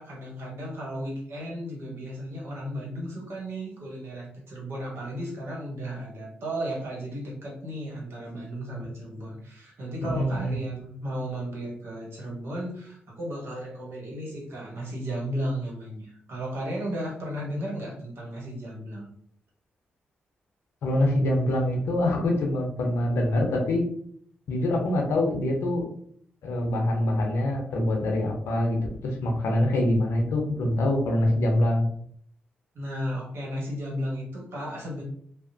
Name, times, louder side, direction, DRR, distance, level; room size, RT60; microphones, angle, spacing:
voice 1, 0.0-19.1 32.7-35.0, equal, 65° right, -3 dB, 1.0 m, -34 dB
voice 2, 10.0-10.5 20.8-23.8 24.5-25.8 26.4-28.8 29.0-31.9, left 1 dB, 75° left, 1 dB, 0.6 m, -24 dB
2.8 x 2.0 x 2.6 m, 0.63 s
hypercardioid pair, 40°, 4 cm